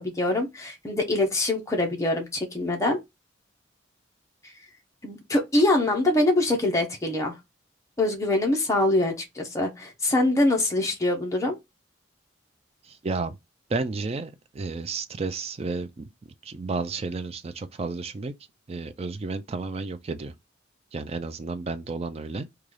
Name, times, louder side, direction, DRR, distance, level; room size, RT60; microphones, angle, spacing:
voice 1, 0.0-3.0 5.0-7.4 8.0-11.6, left 2 dB, 15° left, 0.8 m, -24 dB
voice 2, 12.8-13.4 13.7-16.0 16.4-18.3 18.7-20.3 20.9-22.5, right 3 dB, 30° right, 0.4 m, -32 dB
3.7 x 2.3 x 3.2 m
head